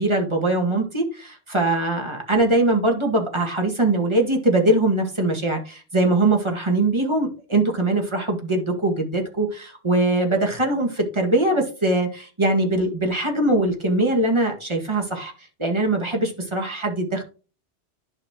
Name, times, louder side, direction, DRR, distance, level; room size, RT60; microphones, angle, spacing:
voice 1, 0.0-15.3 15.6-17.2, right 2 dB, 25° right, 2 dB, 1.9 m, -22 dB
11.0 x 5.6 x 2.9 m, 0.35 s
omnidirectional pair, 1.1 m